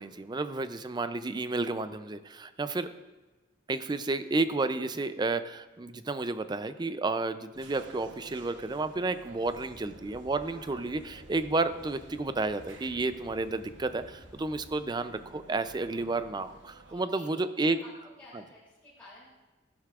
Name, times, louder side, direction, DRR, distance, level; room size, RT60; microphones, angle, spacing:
voice 1, 0.0-2.9 3.7-17.8, right 3 dB, 20° right, 11 dB, 0.4 m, -31 dB
sound 1, 7.5-17.0, right 2 dB, 70° right, 1.1 m, -53 dB
sound 2, 9.4-14.7, equal, 35° left, 4.1 m, -54 dB
voice 2, 16.9-17.9 18.2-19.3, left 1 dB, 10° left, -11 dB, 3.0 m, -53 dB
15.0 x 11.5 x 2.5 m, 1.2 s
head